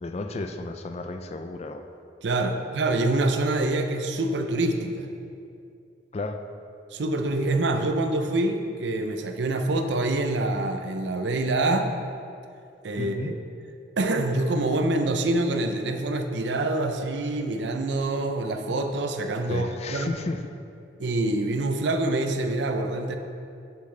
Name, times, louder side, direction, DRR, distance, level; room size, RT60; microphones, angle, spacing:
voice 1, 0.0-1.9 6.1-6.4 13.0-13.4 19.5-20.5, left 2 dB, 35° left, 7 dB, 0.4 m, -33 dB
voice 2, 2.2-5.1 6.9-11.9 12.8-13.3 14.0-20.1 21.0-23.2, right 2 dB, 75° right, 6 dB, 0.5 m, -26 dB
7.4 x 7.3 x 3.3 m, 2.5 s
head